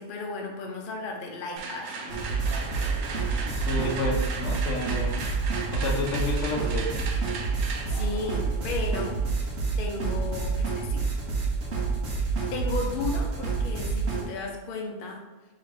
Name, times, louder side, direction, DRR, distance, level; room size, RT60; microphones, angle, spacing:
voice 1, 0.0-2.2 7.6-9.2 9.8-11.1 12.1-15.2, left 3 dB, 50° left, 0 dB, 0.8 m, -35 dB
sound 1, 1.6-9.5, right 4 dB, 80° right, 1.0 m, -38 dB
sound 2, 2.1-14.2, right 4 dB, 60° right, 1.1 m, -28 dB
voice 2, 3.1-5.4 5.7-7.1, left 2 dB, 70° left, 0 dB, 1.0 m, -31 dB
3.6 x 2.9 x 4.6 m, 1.1 s
omnidirectional pair, 1.4 m